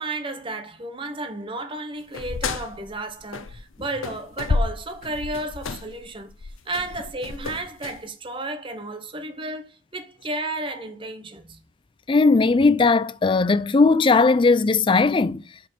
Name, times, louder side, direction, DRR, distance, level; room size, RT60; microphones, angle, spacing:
voice 1, 0.0-6.3 6.7-11.6, right 2 dB, 25° right, 0.9 m, -33 dB
sound 1, 2.1-3.8 4.0-8.0, left 3 dB, 85° left, 0.7 m, -30 dB
voice 2, 12.1-15.4, left 3 dB, 25° left, 0.3 m, -18 dB
5.4 x 5.2 x 6.3 m
head